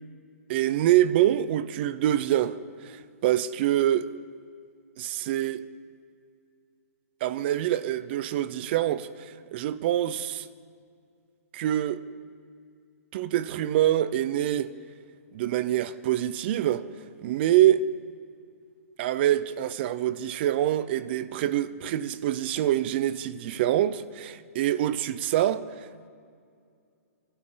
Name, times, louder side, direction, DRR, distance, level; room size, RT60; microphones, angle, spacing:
voice 1, 0.5-4.0 5.0-5.6 7.2-10.5 11.5-12.0 13.1-14.7 15.3-16.8 17.2-17.8 19.0-25.6, right 12 dB, 40° right, 0.7 m, -25 dB
28.5 x 12.5 x 3.9 m
hypercardioid pair, 150°, 8 cm